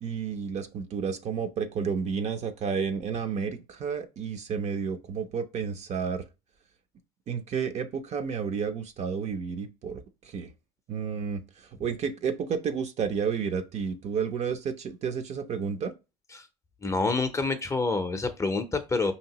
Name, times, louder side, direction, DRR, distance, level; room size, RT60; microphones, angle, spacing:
voice 1, 0.0-6.2 7.3-10.5 10.9-15.9, right 6 dB, 40° right, 0.6 m, -31 dB
voice 2, 16.8-19.1, left 3 dB, 15° left, 0.6 m, -27 dB
5.1 x 2.8 x 2.8 m
supercardioid pair, 95°, 18 cm